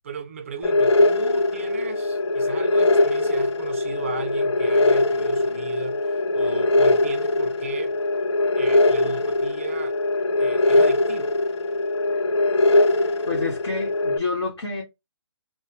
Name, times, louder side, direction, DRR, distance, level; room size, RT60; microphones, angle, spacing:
voice 1, 0.0-8.0 8.6-10.0 10.4-11.4, right 6 dB, 30° right, 0.4 m, -37 dB
sound 1, 0.6-14.2, left 2 dB, 85° left, 0.5 m, -21 dB
voice 2, 13.3-14.8, left 4 dB, 70° left, 1.1 m, -29 dB
2.9 x 2.0 x 2.5 m
hypercardioid pair, 165°, 14 cm